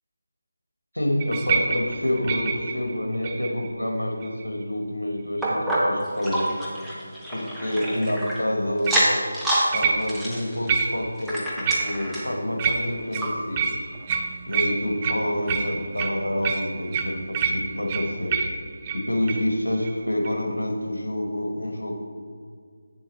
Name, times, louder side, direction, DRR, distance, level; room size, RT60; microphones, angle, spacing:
voice 1, 0.9-6.5 7.3-9.1 9.7-13.7 14.5-18.4 18.9-22.0, left 1 dB, 80° left, 2 dB, 1.3 m, -27 dB
sound 1, 1.2-3.7 4.2-4.6 8.9-9.1 9.7-10.3 10.7-11.2 11.7-12.2 12.6-19.5 19.8-20.0 20.2-20.4, right 5 dB, 20° right, 0.4 m, -28 dB
sound 2, 5.4-8.4 8.8-9.7 10.0-12.4 12.8-12.9 13.2-13.3 13.9-14.0, right 1 dB, ahead, 0.8 m, -27 dB
8.5 x 7.0 x 3.1 m, 2.2 s
figure-of-eight pair, 160°, 0 cm